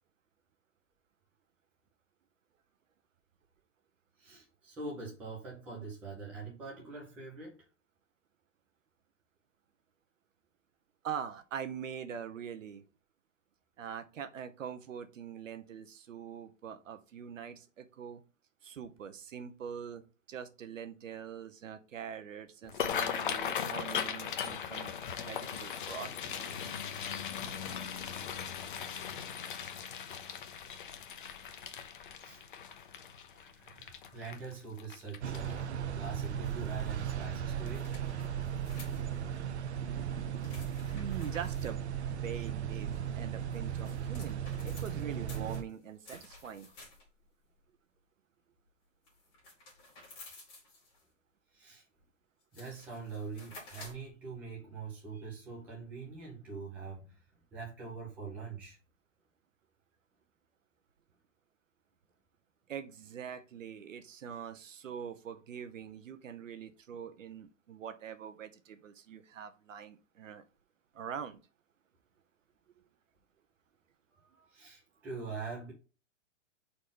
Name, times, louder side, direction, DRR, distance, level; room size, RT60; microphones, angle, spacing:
voice 1, 4.2-7.7 32.2-32.4 33.3-37.9 51.5-51.8 52.5-57.2 57.5-58.8 74.1-75.7, right 4 dB, 5° right, 0.6 m, -44 dB
voice 2, 11.0-12.8 13.8-18.2 18.6-20.0 20.3-24.9 25.2-26.6 40.9-46.7 62.7-70.4 70.9-71.4, right 8 dB, 85° right, 1.2 m, -43 dB
sound 1, 22.6-35.8 36.2-36.5 36.8-37.3 37.7-37.8 39.0-39.2 39.6-39.7 40.2-40.3, left 8 dB, 40° left, 0.7 m, -39 dB
sound 2, 35.2-45.6, right 9 dB, 60° right, 0.8 m, -36 dB
sound 3, 36.4-37.0 37.6-39.3 40.4-41.7 43.3-47.2 49.0-51.0 52.0-52.1 52.4-54.1, left 2 dB, 15° left, 2.2 m, -54 dB
4.9 x 4.3 x 5.5 m
hypercardioid pair, 175°, 38 cm